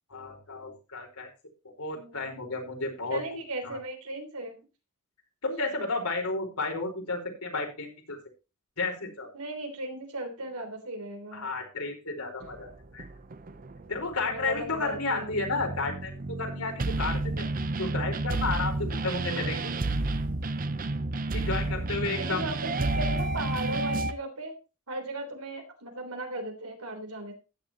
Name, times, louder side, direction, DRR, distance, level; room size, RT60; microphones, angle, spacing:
voice 1, 0.1-1.3 1.8-3.2 3.6-3.8 5.4-8.2 8.8-9.3 11.3-13.1 13.9-16.7 17.0-17.4 17.8-19.7 21.3-22.4, left 3 dB, 80° left, 2 dB, 4.8 m, -32 dB
voice 2, 1.9-2.3 3.1-4.6 9.3-11.5 14.2-15.3 21.5-21.8 22.2-24.6 24.9-27.3, right 2 dB, 85° right, 5 dB, 3.5 m, -37 dB
sound 1, 12.4-24.1, right 2 dB, 40° right, 0.7 m, -31 dB
14.5 x 10.0 x 3.0 m, 0.30 s
head